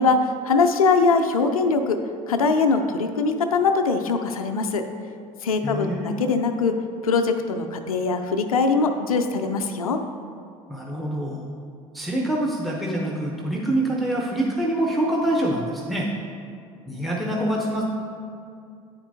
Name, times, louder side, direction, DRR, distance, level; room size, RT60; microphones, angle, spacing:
voice 1, 0.0-2.0 2.3-4.8 5.4-6.8 7.0-10.0, left 4 dB, 90° left, 6 dB, 0.4 m, -22 dB
voice 2, 5.6-6.2 10.7-11.4 11.9-16.1 16.9-17.8, right 1 dB, ahead, -2 dB, 0.7 m, -25 dB
9.3 x 4.3 x 2.7 m, 2.4 s
hypercardioid pair, 70°, 18 cm